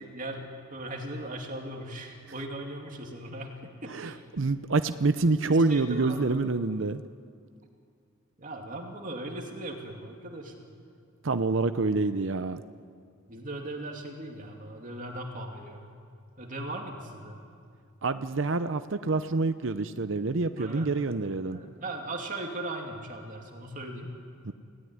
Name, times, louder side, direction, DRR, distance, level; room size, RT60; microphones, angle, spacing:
voice 1, 0.0-4.2 5.5-6.2 8.4-10.7 13.3-15.8 16.4-17.4 20.6-20.9 21.5-24.1, right 1 dB, 40° right, 1 dB, 2.7 m, -38 dB
voice 2, 3.9-7.0 11.2-12.6 18.0-21.6 24.5-24.6, right 3 dB, 65° right, 11 dB, 0.7 m, -27 dB
29.5 x 17.0 x 9.8 m, 2.3 s
head